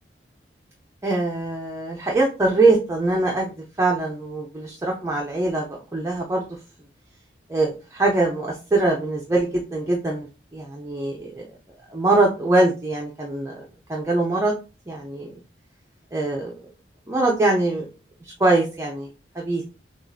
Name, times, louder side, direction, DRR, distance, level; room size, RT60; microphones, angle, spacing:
voice 1, 1.0-3.5 3.8-6.6 7.5-11.5 11.9-14.5 14.9-15.3 16.1-16.5 17.1-17.9 18.2-19.1 19.3-19.6, right 2 dB, 15° right, -1 dB, 0.5 m, -23 dB
6.3 x 2.4 x 2.6 m, 0.32 s
head